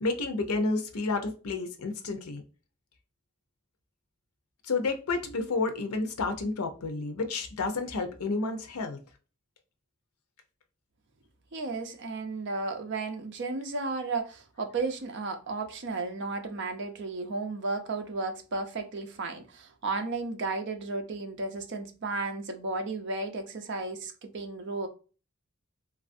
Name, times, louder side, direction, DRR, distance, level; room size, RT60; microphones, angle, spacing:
voice 1, 0.0-2.4 4.6-9.0, left 3 dB, 90° left, 0.6 m, -30 dB
voice 2, 11.5-24.9, right 3 dB, 55° right, 0.5 m, -34 dB
3.2 x 2.4 x 2.5 m
head